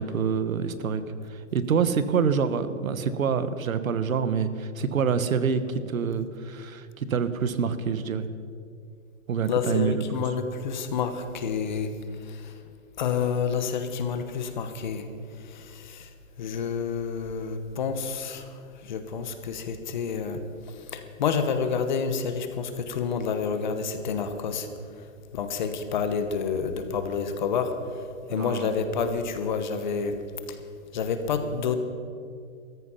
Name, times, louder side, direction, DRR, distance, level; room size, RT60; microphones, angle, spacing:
voice 1, 0.0-8.3 9.3-10.3 28.3-28.7, right 6 dB, 90° right, 12 dB, 1.3 m, -27 dB
voice 2, 9.5-11.9 12.2-12.6 13.0-15.1 15.4-16.1 16.4-24.7 25.3-28.0 28.3-30.2 30.5-30.6 30.9-31.8, left 6 dB, 35° left, 9 dB, 1.1 m, -29 dB
15.5 x 14.0 x 5.7 m, 2.3 s
hypercardioid pair, 170°, 40 cm